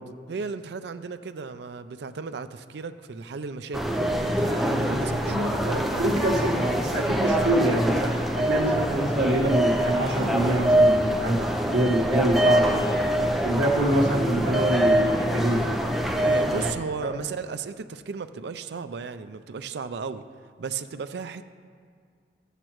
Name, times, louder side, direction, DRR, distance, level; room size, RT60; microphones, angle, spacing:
voice 1, 0.3-3.8 4.1-6.0 16.2-20.2 20.6-21.5, right 5 dB, 70° right, 11 dB, 0.4 m, -34 dB
sound 1, 3.7-16.7, right 1 dB, ahead, 0.6 m, -24 dB
voice 2, 4.9-11.4 11.7-12.9 13.4-15.7 17.0-17.2, right 1 dB, 90° right, -2 dB, 1.4 m, -25 dB
14.0 x 8.2 x 3.0 m, 2.1 s
head